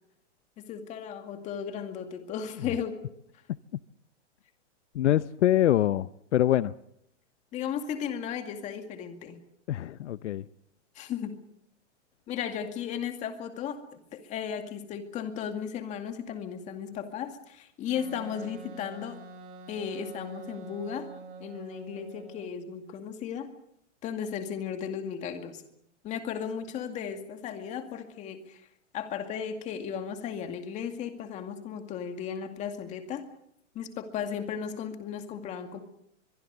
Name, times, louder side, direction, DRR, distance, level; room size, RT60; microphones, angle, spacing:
voice 1, 0.6-3.0 7.5-9.4 11.0-11.4 12.3-13.8 14.1-19.2 19.7-21.1 21.4-23.5 24.0-25.6 26.0-28.7 28.9-33.2 33.7-35.8, left 8 dB, 20° left, 2.2 m, -35 dB
voice 2, 4.9-6.7 9.7-10.5, left 12 dB, 70° left, 0.8 m, -25 dB
Wind instrument woodwind instrument, 17.9-22.6, right 4 dB, 45° right, 2.4 m, -45 dB
23.5 x 22.5 x 6.8 m
hypercardioid pair, 165°, 36 cm